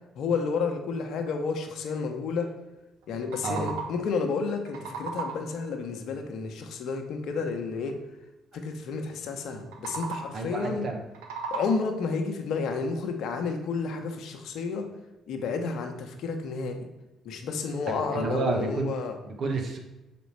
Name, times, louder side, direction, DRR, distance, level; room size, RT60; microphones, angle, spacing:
voice 1, 0.1-2.5 3.1-8.0 8.5-10.9 11.5-14.9 15.3-16.9 17.2-19.2, left 4 dB, 65° left, 5 dB, 1.0 m, -31 dB
sound 1, 3.0-4.1 4.5-5.6 9.6-10.5 10.9-12.0, right 5 dB, 80° right, 0.9 m, -37 dB
voice 2, 10.3-11.0 17.9-18.9 19.2-19.8, right 3 dB, 55° right, 2 dB, 1.2 m, -30 dB
6.2 x 5.2 x 4.7 m, 1.0 s
hypercardioid pair, 50°, 0 cm